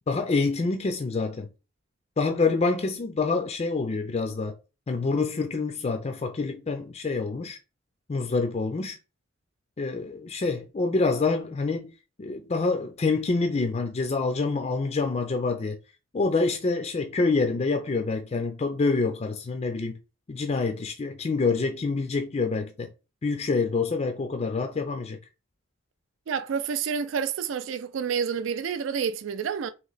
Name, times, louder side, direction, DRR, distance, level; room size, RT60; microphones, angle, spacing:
voice 1, 0.1-1.5 2.2-4.6 4.9-7.6 8.1-9.0 9.8-11.9 12.2-15.8 16.1-20.0 20.3-22.9 23.2-25.2, left 3 dB, 35° left, 0.4 m, -26 dB
voice 2, 26.3-29.7, right 6 dB, 75° right, 0.4 m, -29 dB
3.1 x 2.9 x 3.9 m
head